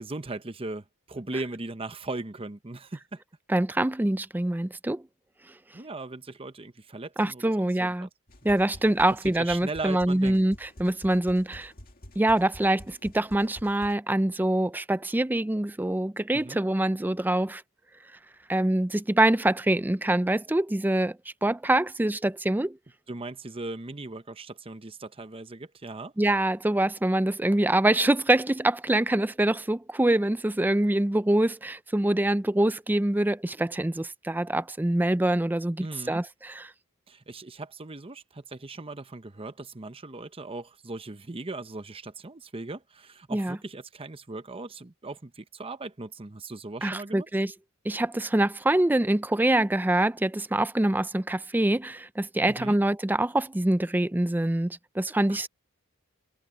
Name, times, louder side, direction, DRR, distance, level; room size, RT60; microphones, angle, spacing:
voice 1, 0.0-3.2 5.7-8.1 9.4-10.5 16.3-16.6 23.1-26.1 35.8-36.2 37.1-47.3 52.5-52.8 55.3-55.4, right 2 dB, 25° right, 0.9 m, -38 dB
voice 2, 3.5-5.0 7.2-8.1 8.4-11.7 12.2-17.6 18.5-21.2 21.4-22.8 26.2-36.7 43.3-43.6 46.8-47.5 47.8-55.5, right 1 dB, 10° right, 0.4 m, -25 dB
sound 1, 8.3-13.9, equal, 40° left, 2.2 m, -48 dB
head